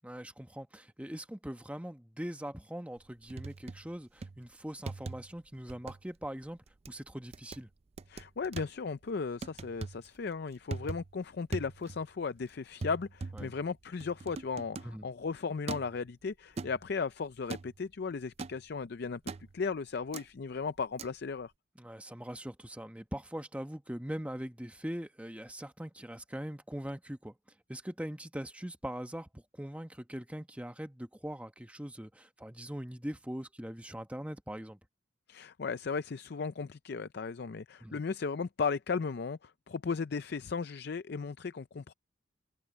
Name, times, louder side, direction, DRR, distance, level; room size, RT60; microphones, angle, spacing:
voice 1, 0.0-6.6 6.9-7.7 13.3-13.5 14.8-15.1 21.8-27.3 27.7-34.8 37.8-38.0, equal, 5° right, 1.1 m, -41 dB
sound 1, 3.0-3.9 4.2-4.5 4.9-5.4 5.7-6.0 6.4-6.9 7.3-7.6 8.0-8.7 9.4-10.1 10.5-11.2 11.5-12.1 12.4-12.5 12.8-15.0 15.7-16.0 16.6-17.0 17.5-17.8 18.4-18.6 19.3-19.6 20.1-20.3 21.0-21.1, right 3 dB, 30° right, 0.4 m, -41 dB
voice 2, 8.1-19.2 19.5-21.5 35.3-41.9, left 5 dB, 55° left, 0.5 m, -36 dB
head